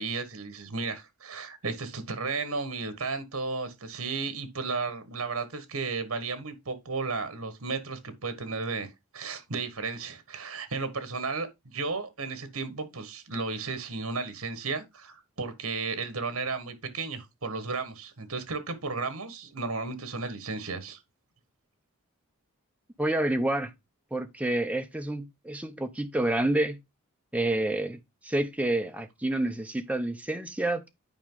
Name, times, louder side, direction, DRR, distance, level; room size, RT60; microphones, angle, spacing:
voice 1, 0.0-21.0, right 4 dB, 70° right, 1.5 m, -34 dB
voice 2, 23.0-23.7 24.1-26.8 27.3-30.8, right 1 dB, 5° right, 0.7 m, -28 dB
9.0 x 4.8 x 3.8 m
head